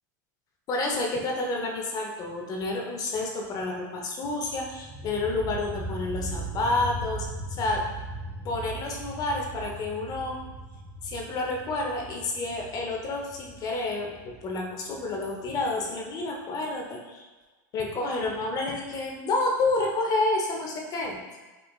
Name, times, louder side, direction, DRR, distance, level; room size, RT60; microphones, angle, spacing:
voice 1, 0.7-7.8 8.4-10.4 11.0-17.3 17.7-21.2, left 2 dB, 35° left, 0 dB, 0.6 m, -29 dB
sound 1, 4.4-16.0, right 2 dB, 25° right, 0.5 m, -39 dB
4.4 x 2.4 x 2.3 m, 1.2 s
supercardioid pair, 115°, 11 cm